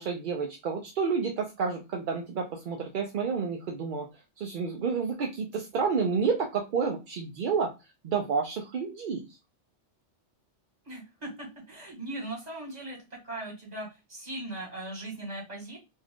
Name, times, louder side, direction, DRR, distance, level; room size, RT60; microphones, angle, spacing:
voice 1, 0.0-4.1 4.4-7.7 8.0-9.3, right 5 dB, 60° right, 1 dB, 0.6 m, -30 dB
voice 2, 10.8-15.8, right 1 dB, 35° right, -2 dB, 1.5 m, -39 dB
2.7 x 2.4 x 3.4 m, 0.26 s
omnidirectional pair, 1.2 m